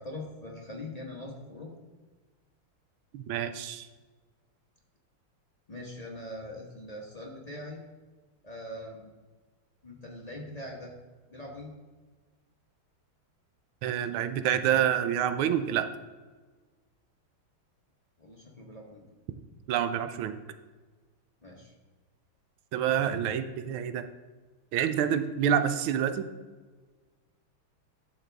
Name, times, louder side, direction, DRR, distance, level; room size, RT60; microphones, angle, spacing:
voice 1, 0.0-1.7 5.7-7.8 8.4-9.1 9.8-10.9 11.3-11.7 18.2-19.0 21.4-21.7, left 1 dB, 30° left, -2 dB, 0.8 m, -42 dB
voice 2, 3.1-3.9 13.8-15.9 19.7-20.4 22.7-24.0 24.7-26.3, right 9 dB, 80° right, 10 dB, 1.4 m, -27 dB
11.5 x 6.5 x 3.4 m, 1.4 s
omnidirectional pair, 2.3 m